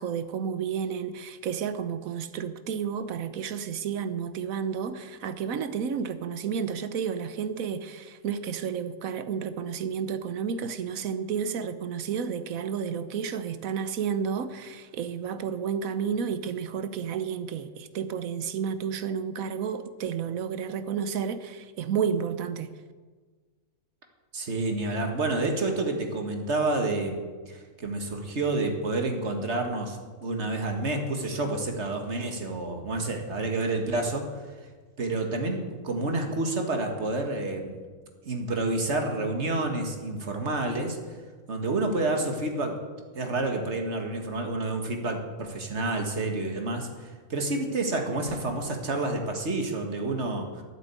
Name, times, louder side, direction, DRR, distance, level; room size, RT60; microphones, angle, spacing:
voice 1, 0.0-22.7, right 7 dB, 70° right, 1.2 m, -31 dB
voice 2, 24.3-27.2 27.5-34.3 35.0-37.7 38.2-41.0 41.5-42.8 43.1-50.6, right 2 dB, 50° right, 2.0 m, -29 dB
12.0 x 9.1 x 8.4 m
omnidirectional pair, 1.6 m